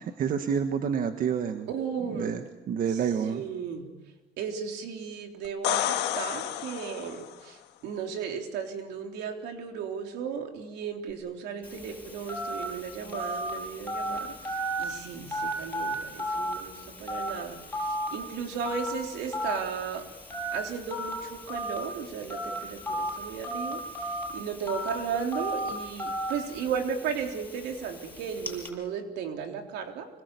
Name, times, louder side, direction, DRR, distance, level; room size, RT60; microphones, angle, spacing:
voice 1, 0.0-1.7 2.2-3.4, right 7 dB, 55° right, 7 dB, 1.6 m, -28 dB
voice 2, 1.7-2.3 2.9-3.9 4.4-20.0 20.5-30.1, right 6 dB, 85° right, 3 dB, 3.8 m, -35 dB
sound 1, 5.4-7.4 11.1-11.2, left 12 dB, 90° left, 1.9 m, -30 dB
Telephone, 11.6-28.7, right 1 dB, 10° left, 6.7 m, -35 dB
26.0 x 22.0 x 8.4 m, 1.1 s
cardioid pair, 110°, 17 cm